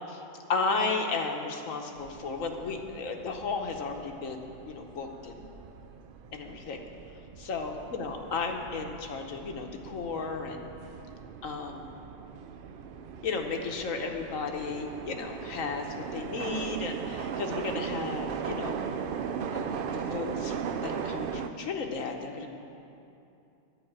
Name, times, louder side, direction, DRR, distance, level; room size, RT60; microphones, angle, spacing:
voice 1, 0.5-5.4 6.3-6.8 7.4-10.6 11.4-11.9 13.2-18.8 19.5-20.6 20.8-22.5, left 4 dB, 75° left, 3 dB, 1.3 m, -34 dB
sound 1, 2.0-21.5, right 7 dB, 70° right, 0.5 m, -38 dB
11.0 x 5.3 x 8.6 m, 2.7 s
omnidirectional pair, 1.4 m